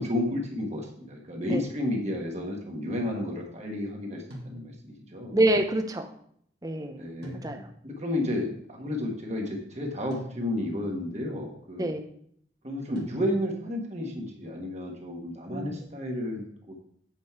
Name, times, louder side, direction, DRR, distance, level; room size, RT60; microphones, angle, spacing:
voice 1, 0.0-5.4 7.0-7.4 7.8-11.9 12.6-16.8, left 1 dB, 35° right, 0 dB, 1.6 m, -32 dB
sound 1, 4.3-5.1 7.2-8.0 10.1-10.9 13.0-13.7, equal, 60° right, 1.8 m, -44 dB
voice 2, 5.3-6.1 6.6-7.0 7.4-7.7 11.8-12.0 15.5-15.8, right 1 dB, 20° right, 5 dB, 0.7 m, -26 dB
8.1 x 5.3 x 4.6 m, 0.66 s
head